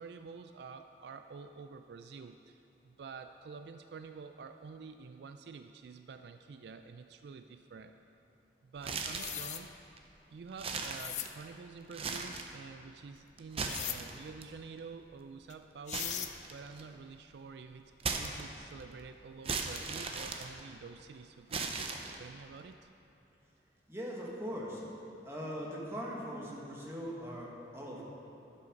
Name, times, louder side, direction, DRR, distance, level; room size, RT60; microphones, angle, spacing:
voice 1, 0.0-7.9 8.6-9.7 10.3-22.9, right 5 dB, 70° right, 7 dB, 0.3 m, -48 dB
sound 1, 8.8-9.5 10.0-10.1 10.5-11.5 11.9-12.6 13.4-14.4 15.9-16.9 18.0-18.8 19.4-21.0 21.5-22.4, right 4 dB, 30° right, 0.6 m, -37 dB
sound 2, 9.0-9.6 10.8-11.3 13.7-14.0 15.5-15.6 15.9-16.3, left 11 dB, 40° left, 0.4 m, -39 dB
voice 2, 23.9-24.8 25.2-28.0, equal, 15° right, -4 dB, 1.5 m, -40 dB
11.0 x 7.7 x 5.2 m, 3.0 s
head